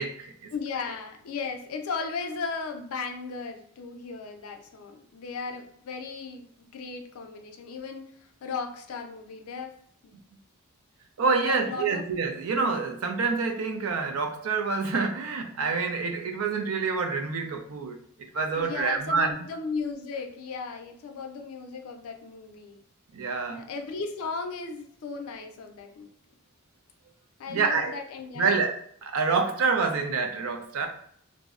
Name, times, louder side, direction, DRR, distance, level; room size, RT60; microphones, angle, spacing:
voice 1, 0.0-0.5 11.2-18.0 18.3-19.3 23.1-23.7 27.5-27.9 28.4-30.9, right 4 dB, 85° right, 5 dB, 0.4 m, -27 dB
voice 2, 0.5-9.8 10.0-10.1 11.3-12.0 18.5-22.8 23.5-26.1 27.4-28.6, left 4 dB, 90° left, 5 dB, 0.4 m, -36 dB
2.6 x 2.0 x 2.3 m, 0.65 s
head